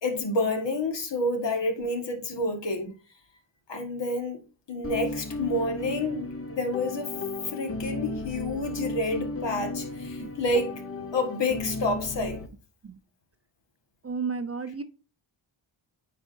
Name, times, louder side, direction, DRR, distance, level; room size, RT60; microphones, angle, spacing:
voice 1, 0.0-2.9 3.7-4.4 4.7-7.2 7.5-10.8 11.1-12.4, left 2 dB, 60° left, 1.8 m, -29 dB
sound 1, 4.8-12.5, left 2 dB, 30° left, 1.0 m, -35 dB
voice 2, 14.0-14.8, right 5 dB, 30° right, 0.5 m, -33 dB
9.4 x 5.0 x 2.7 m
wide cardioid pair, 105°, 49 cm